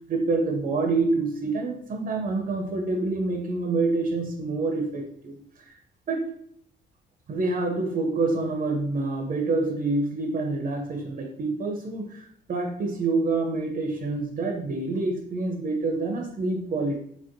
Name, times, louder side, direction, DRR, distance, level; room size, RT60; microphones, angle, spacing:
voice 1, 0.1-5.4 6.1-6.3 7.3-17.0, right 3 dB, 40° right, 3 dB, 0.4 m, -27 dB
3.1 x 2.6 x 2.5 m, 0.66 s
cardioid pair, 90°, 20 cm